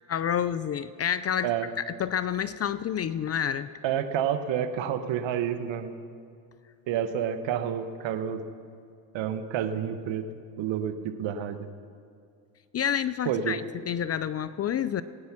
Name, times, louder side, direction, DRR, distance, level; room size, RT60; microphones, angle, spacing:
voice 1, 0.1-1.5 1.8-3.7 12.7-15.0, left 9 dB, 35° left, 15 dB, 0.4 m, -29 dB
voice 2, 3.8-5.9 6.9-8.4 9.1-10.3 10.6-11.6 13.2-13.6, right 9 dB, 65° right, 10 dB, 1.2 m, -29 dB
18.5 x 9.5 x 6.0 m, 2.3 s
supercardioid pair, 80°, 48 cm